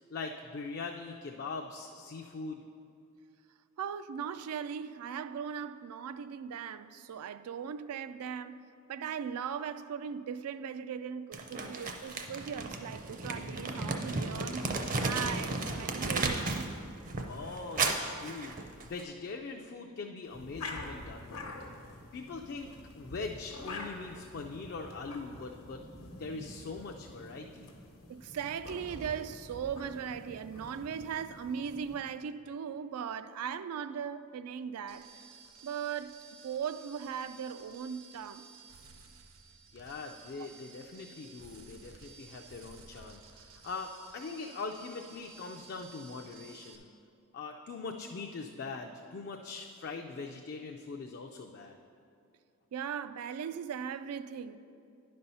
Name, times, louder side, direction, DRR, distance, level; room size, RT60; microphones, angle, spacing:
voice 1, 0.1-2.6 17.3-21.5 22.1-25.8 26.2-27.7 39.7-46.9 47.3-51.8, left 4 dB, 50° left, 0.3 m, -42 dB
voice 2, 3.8-8.6 8.9-14.7 15.0-16.7 28.1-35.3 35.6-36.1 36.4-38.4 40.4-40.5 52.7-54.6, right 7 dB, 90° right, 0.3 m, -38 dB
Crumpling crinkling, 11.3-16.7 17.0-19.0, right 3 dB, 40° right, 0.5 m, -34 dB
sound 1, 20.3-32.0, left 2 dB, 80° left, 1.0 m, -47 dB
sound 2, 34.9-46.8, right 5 dB, 70° right, 0.7 m, -54 dB
10.0 x 4.3 x 5.4 m
head